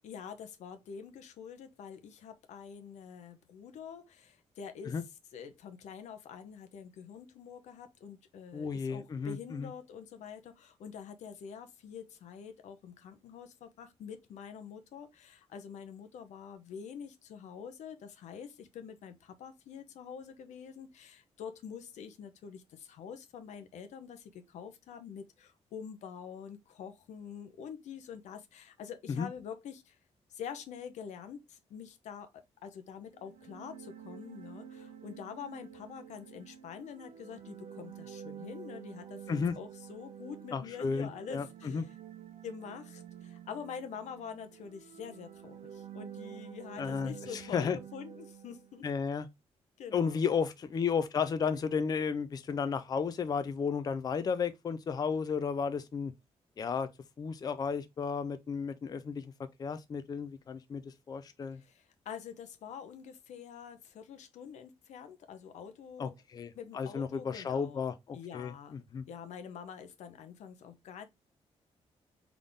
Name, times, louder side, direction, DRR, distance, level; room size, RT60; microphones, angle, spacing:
voice 1, 0.0-5.0 5.3-30.0 30.3-32.3 32.6-41.9 42.4-48.8 49.8-50.2 61.5-66.2 66.5-67.8 68.1-68.8 69.1-71.1, left 7 dB, 85° left, 0.7 m, -46 dB
voice 2, 8.5-9.7 29.1-29.3 39.3-39.5 40.5-41.5 41.7-41.8 46.8-47.8 48.8-49.3 49.9-56.1 56.6-56.9 57.2-59.3 59.6-61.6 66.0-69.0, left 6 dB, 35° left, 0.4 m, -33 dB
sound 1, 33.1-48.8, right 9 dB, 85° right, 0.7 m, -49 dB
3.9 x 3.5 x 3.4 m
cardioid pair, 135°, 12 cm